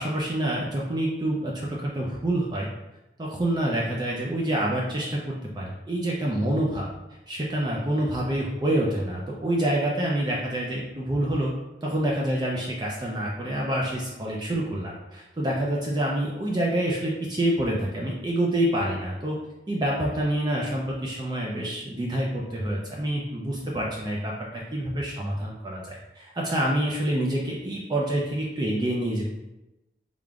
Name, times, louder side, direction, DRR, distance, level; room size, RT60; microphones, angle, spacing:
voice 1, 0.0-2.7 3.2-6.9 7.3-11.5 11.8-19.4 19.7-29.3, right 1 dB, 25° right, -3 dB, 0.4 m, -27 dB
3.6 x 3.5 x 2.3 m, 0.96 s
head